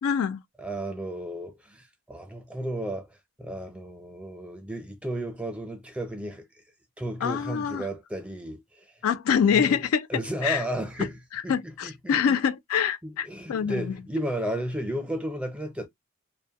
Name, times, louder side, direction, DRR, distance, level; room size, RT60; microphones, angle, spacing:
voice 1, 0.0-0.4 7.2-7.9 9.0-10.6 11.0-11.1 11.3-14.0, left 7 dB, 75° left, 0.3 m, -25 dB
voice 2, 0.6-6.5 7.0-8.9 9.5-9.8 10.1-11.5 11.8-12.4 13.0-15.9, right 1 dB, 5° right, 0.5 m, -33 dB
2.5 x 2.1 x 2.8 m
head